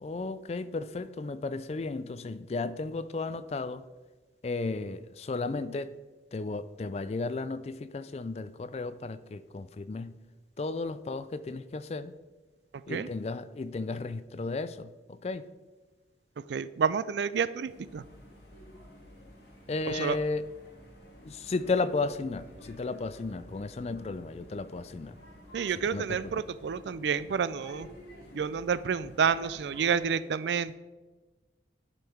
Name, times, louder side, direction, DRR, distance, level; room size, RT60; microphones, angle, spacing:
voice 1, 0.0-3.8 4.4-5.9 6.3-10.2 10.6-12.1 12.9-15.4 19.7-20.4 21.2-25.2 25.9-26.2, left 3 dB, 35° left, 14 dB, 0.3 m, -34 dB
voice 2, 16.5-18.0 19.9-20.2 25.5-27.9 28.3-30.8, right 6 dB, 75° right, 17 dB, 0.4 m, -29 dB
sound 1, 17.6-30.1, equal, 60° left, 2.3 m, -51 dB
10.5 x 5.5 x 4.5 m, 1.2 s
head